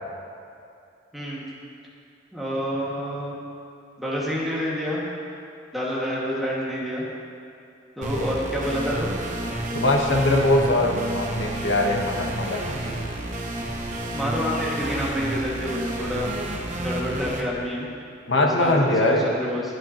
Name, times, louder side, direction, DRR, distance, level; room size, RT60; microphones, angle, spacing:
voice 1, 1.1-1.4 2.3-3.4 4.0-5.1 5.7-7.1 8.0-9.1 14.1-16.3 16.8-17.9 18.3-19.6, equal, ahead, -6 dB, 2.0 m, -28 dB
sound 1, 8.0-17.4, right 1 dB, 40° right, 1.1 m, -30 dB
voice 2, 9.7-13.0 18.3-19.3, left 1 dB, 85° left, 1 dB, 1.3 m, -22 dB
23.0 x 7.9 x 3.0 m, 2.5 s
head